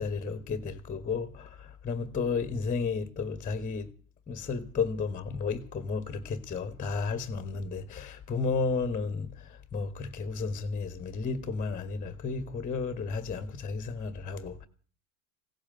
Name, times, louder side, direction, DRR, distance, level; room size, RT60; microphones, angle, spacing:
voice 1, 0.0-3.9 4.3-9.3 9.7-14.7, left 4 dB, 20° left, 1.5 m, -32 dB
16.5 x 8.7 x 9.3 m
hypercardioid pair, 85°, 43 cm